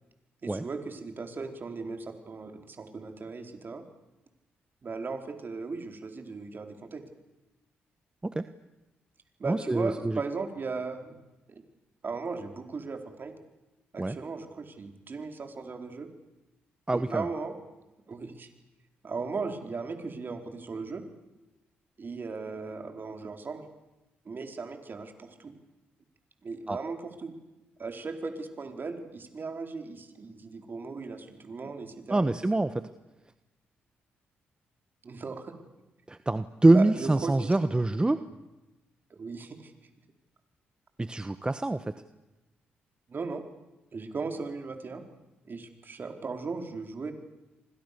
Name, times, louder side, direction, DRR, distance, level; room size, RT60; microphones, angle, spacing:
voice 1, 0.4-3.8 4.8-7.0 9.4-11.2 11.5-11.6 12.0-13.3 13.9-16.1 16.9-17.5 18.1-18.5 19.0-21.0 22.0-23.7 24.2-25.5 26.4-27.3 27.8-32.2 35.0-35.5 36.7-37.5 39.1-39.7 43.1-43.4 43.9-45.0 45.4-47.1, right 4 dB, 45° right, 5 dB, 4.5 m, -37 dB
voice 2, 9.4-10.2 14.0-14.2 16.9-17.3 26.7-26.8 32.1-32.9 36.1-38.2 41.0-41.9, right 2 dB, 20° right, 11 dB, 1.2 m, -25 dB
29.0 x 25.5 x 7.0 m, 1.0 s
supercardioid pair, 50°, 5 cm